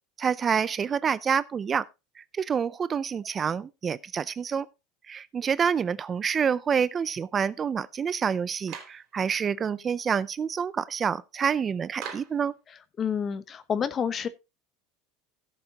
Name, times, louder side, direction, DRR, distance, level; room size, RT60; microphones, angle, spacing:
voice 1, 0.2-1.9 2.2-4.7 5.1-12.5, right 7 dB, 30° right, 0.5 m, -27 dB
Clapping, 8.7-9.0 12.0-12.4, right 7 dB, 55° right, 3.4 m, -39 dB
voice 2, 13.0-14.3, left 7 dB, 35° left, 1.0 m, -28 dB
17.0 x 7.0 x 2.9 m
supercardioid pair, 115°, 0 cm